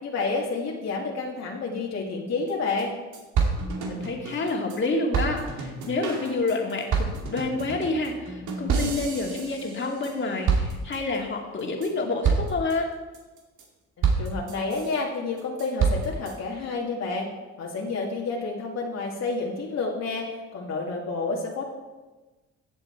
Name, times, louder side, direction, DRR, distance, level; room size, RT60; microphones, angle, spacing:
voice 1, 0.0-2.9 14.0-17.3 17.6-21.6, left 3 dB, 60° left, -2 dB, 2.0 m, -29 dB
sound 1, 2.5-2.6 2.8-2.9 3.1-4.8 5.1-10.2 10.5-11.2 11.6-11.9 12.2-12.7 13.1-13.6 14.0-15.0 15.4-16.3, right 5 dB, 80° right, 2.2 m, -28 dB
voice 2, 3.8-12.9, left 3 dB, 40° left, 1 dB, 2.2 m, -28 dB
15.5 x 7.8 x 4.4 m, 1.2 s
cardioid pair, 90°, 30 cm